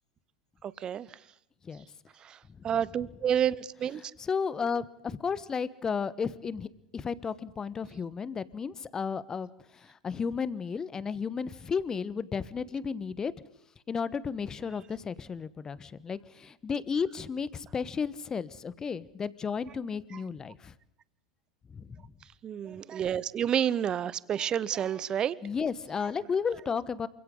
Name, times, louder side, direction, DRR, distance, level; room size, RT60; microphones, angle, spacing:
voice 1, 0.6-1.1 2.2-2.4 2.6-4.0 22.4-25.3, right 9 dB, 30° right, 20 dB, 0.9 m, -29 dB
voice 2, 4.2-6.7 6.9-13.3 13.9-20.7 21.7-22.1 25.4-27.1, left 6 dB, 20° left, 17 dB, 1.2 m, -33 dB
28.0 x 25.5 x 3.9 m, 0.80 s
figure-of-eight pair, 85°, 3 cm